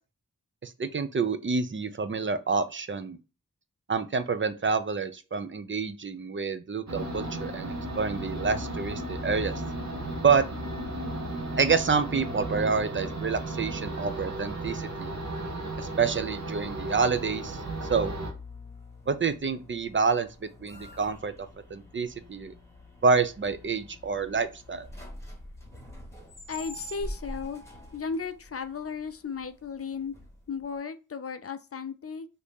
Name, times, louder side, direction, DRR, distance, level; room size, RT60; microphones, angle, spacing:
voice 1, 0.6-3.2 3.9-9.6 10.2-10.4 11.6-15.1 15.8-18.1 19.1-20.3 20.6-21.3 21.7-22.5 23.0-24.9, right 5 dB, 35° right, 0.5 m, -28 dB
sound 1, 6.9-18.3, right 1 dB, 50° right, 1.0 m, -35 dB
sound 2, 17.1-30.7, left 1 dB, 10° left, 1.3 m, -46 dB
voice 2, 26.5-27.6 27.9-30.1 30.5-32.3, left 5 dB, 45° left, 0.4 m, -35 dB
2.8 x 2.6 x 3.4 m
cardioid pair, 40°, 34 cm